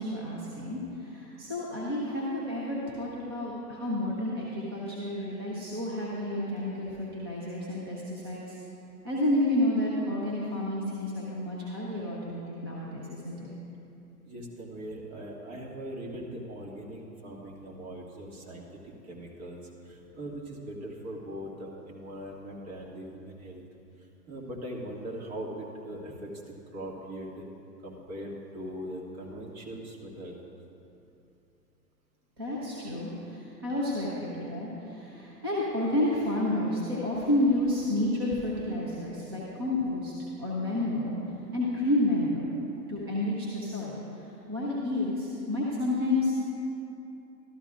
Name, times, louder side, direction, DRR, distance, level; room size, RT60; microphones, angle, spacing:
voice 1, 0.0-8.6 9.0-13.5 32.4-40.1 40.4-41.1 41.5-42.5 42.9-44.0 44.5-46.3, left 1 dB, 15° right, -5 dB, 0.4 m, -30 dB
voice 2, 14.2-19.6 19.8-23.6 24.3-26.3 26.7-27.4 27.8-30.3, right 1 dB, 35° right, -3 dB, 2.0 m, -40 dB
13.0 x 12.5 x 2.4 m, 2.8 s
hypercardioid pair, 140°, 50 cm